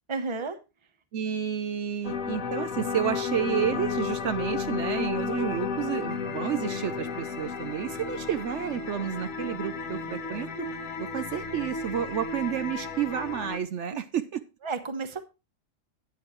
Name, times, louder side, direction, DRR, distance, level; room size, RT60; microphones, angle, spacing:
voice 1, 0.1-0.6 14.6-15.2, right 4 dB, 25° right, 10 dB, 0.9 m, -31 dB
voice 2, 1.1-10.7 11.0-14.4, right 9 dB, 65° right, 11 dB, 0.9 m, -30 dB
sound 1, 2.0-13.6, left 5 dB, 85° left, 1.4 m, -33 dB
12.5 x 9.3 x 3.1 m, 0.27 s
omnidirectional pair, 1.3 m